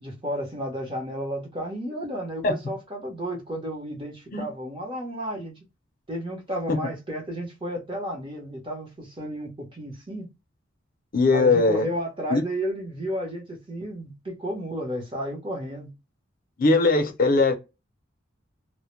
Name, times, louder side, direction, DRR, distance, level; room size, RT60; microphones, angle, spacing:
voice 1, 0.0-5.5 6.1-10.3 11.3-15.9, equal, 25° right, 0.8 m, -32 dB
voice 2, 11.1-11.9 12.3-12.4 16.6-17.5, left 3 dB, 50° left, 0.5 m, -20 dB
2.1 x 2.1 x 3.0 m
head